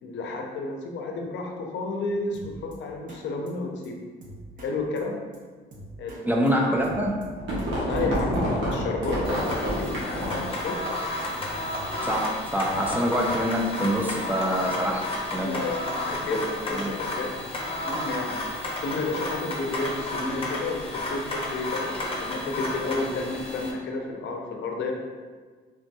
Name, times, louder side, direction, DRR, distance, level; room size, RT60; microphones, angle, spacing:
voice 1, 0.0-4.0 4.6-5.2 6.0-6.2 7.9-11.1 15.4-17.4 17.8-18.4 18.8-25.0, left 3 dB, 70° left, 1 dB, 0.5 m, -31 dB
Drum kit, 2.3-2.7 3.1-3.2 3.5-3.6 3.8-3.9 4.2-4.7 5.0-5.1 5.3-5.4 5.7-6.2 6.5-6.6 6.8-7.7 8.0-9.2 9.5-9.6 9.8-9.9 10.2-10.7 11.0-12.2 12.5-14.2, equal, 45° right, 0.7 m, -43 dB
voice 2, 6.3-7.2 12.0-15.0 15.3-15.5 16.3-16.4 16.7-16.9, equal, 10° right, -1 dB, 0.4 m, -25 dB
sound 1, 7.1-10.6, equal, 75° right, 1.0 m, -28 dB
sound 2, 9.2-23.7, left 1 dB, 25° left, 0.7 m, -32 dB
3.6 x 2.6 x 2.2 m, 1.5 s
cardioid pair, 90°, 20 cm